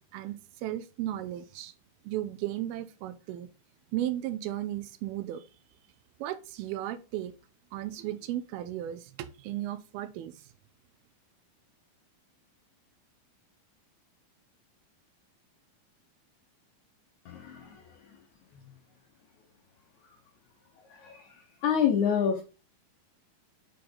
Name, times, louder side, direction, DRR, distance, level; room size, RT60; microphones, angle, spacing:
voice 1, 0.1-1.7 2.1-3.5 3.9-5.4 6.2-7.3 7.7-10.3, right 13 dB, 85° right, 2.4 m, -35 dB
voice 2, 17.3-18.2 18.5-18.6 20.0-20.2 20.9-21.3 21.6-22.4, left 8 dB, 70° left, 1.9 m, -28 dB
6.7 x 4.3 x 3.8 m
omnidirectional pair, 4.4 m